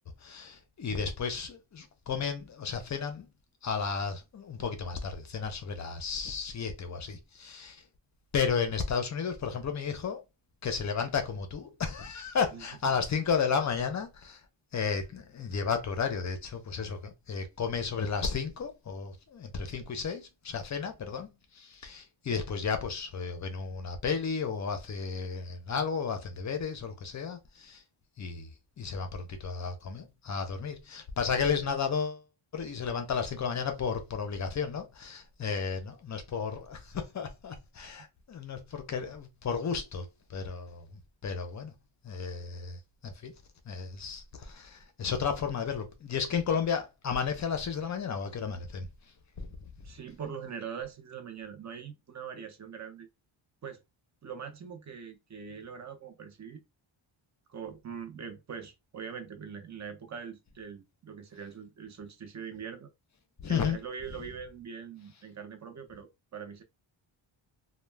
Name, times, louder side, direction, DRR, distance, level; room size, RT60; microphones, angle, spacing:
voice 1, 0.2-3.3 3.6-7.8 8.3-10.2 10.6-14.4 14.7-21.3 21.5-27.8 28.2-28.5 28.8-32.2 32.5-40.9 41.2-41.7 42.0-43.3 43.7-48.9 49.4-49.5 63.4-63.8, left 6 dB, 35° left, 0.5 m, -33 dB
voice 2, 12.5-12.9 49.8-53.1 53.6-53.8 54.2-56.6 57.5-62.9 63.5-66.6, right 7 dB, 35° right, 0.5 m, -42 dB
2.3 x 2.1 x 3.2 m
wide cardioid pair, 160°, 49 cm